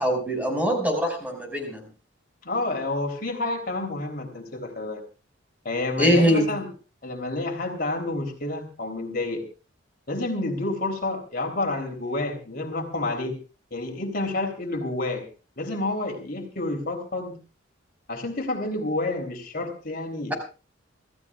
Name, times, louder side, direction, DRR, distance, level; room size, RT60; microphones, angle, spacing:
voice 1, 0.0-1.9 6.0-6.5, equal, 10° right, 2 dB, 5.5 m, -22 dB
voice 2, 2.5-5.0 5.7-6.7 7.0-9.4 10.1-13.4 13.7-15.2 15.6-17.4 18.1-20.3, left 2 dB, 45° left, 2 dB, 3.4 m, -29 dB
27.5 x 15.5 x 2.4 m, 0.34 s
head